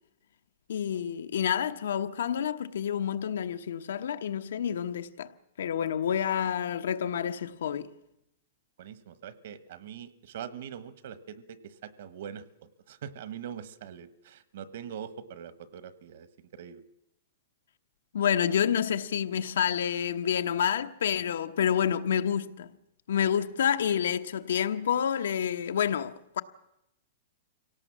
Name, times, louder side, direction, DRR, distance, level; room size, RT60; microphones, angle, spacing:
voice 1, 0.7-5.3 5.6-7.9 18.1-22.7 23.1-26.4, left 8 dB, 85° left, 1.0 m, -28 dB
voice 2, 8.8-12.4 12.9-16.8, right 8 dB, 55° right, 1.1 m, -43 dB
24.5 x 17.5 x 7.4 m
supercardioid pair, 175°, 0 cm